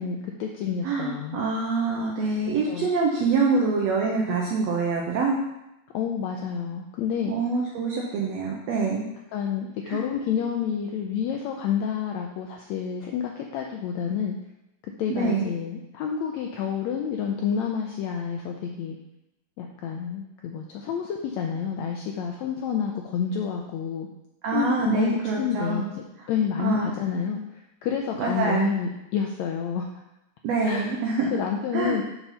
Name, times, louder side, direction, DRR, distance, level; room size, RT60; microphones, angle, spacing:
voice 1, 0.0-1.4 2.7-2.9 5.9-7.3 9.3-14.4 15.0-19.0 19.6-24.1 24.5-25.9 26.3-29.9 30.6-30.9 31.3-32.0, left 7 dB, 85° left, 2 dB, 1.6 m, -29 dB
voice 2, 0.8-5.4 7.3-9.1 9.9-10.0 15.1-15.5 24.4-25.9 26.6-26.9 28.2-28.7 30.4-31.3 31.7-32.0, right 4 dB, 70° right, -2 dB, 1.8 m, -25 dB
7.2 x 4.4 x 5.5 m, 0.90 s
omnidirectional pair, 3.7 m